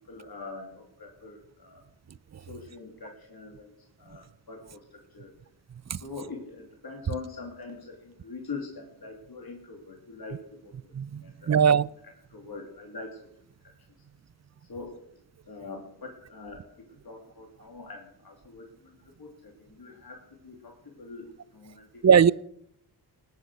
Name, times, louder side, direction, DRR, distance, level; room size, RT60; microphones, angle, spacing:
voice 1, 0.1-1.8 2.5-5.4 5.9-13.2 14.6-15.0 15.4-22.0, left 4 dB, 60° left, 3.3 m, -43 dB
voice 2, 11.0-11.9 22.0-22.3, right 7 dB, 40° right, 0.6 m, -19 dB
20.0 x 9.5 x 6.4 m
wide cardioid pair, 65°, 40 cm